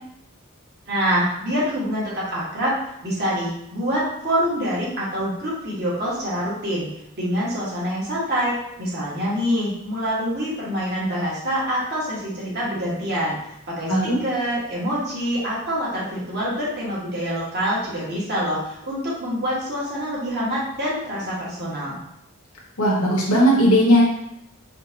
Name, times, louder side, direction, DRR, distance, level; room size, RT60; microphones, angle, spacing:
voice 1, 0.9-2.8 3.0-6.9 7.2-13.4 13.7-22.0, equal, 50° right, -7 dB, 1.3 m, -25 dB
voice 2, 13.9-14.2 22.8-24.0, equal, 85° left, -4 dB, 1.0 m, -17 dB
4.3 x 2.4 x 2.8 m, 0.79 s
head